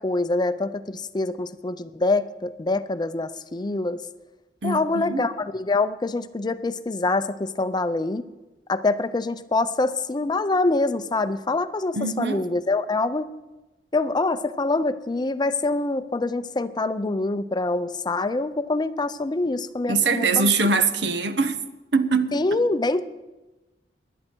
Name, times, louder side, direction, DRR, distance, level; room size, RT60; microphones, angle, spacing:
voice 1, 0.0-4.0 4.6-8.2 8.7-13.3 13.9-20.5 22.3-23.0, left 2 dB, 25° left, 0.5 m, -25 dB
voice 2, 4.6-5.3 11.9-12.5 19.9-21.6 21.9-22.6, right 4 dB, 75° right, 0.9 m, -23 dB
19.5 x 11.0 x 4.5 m
head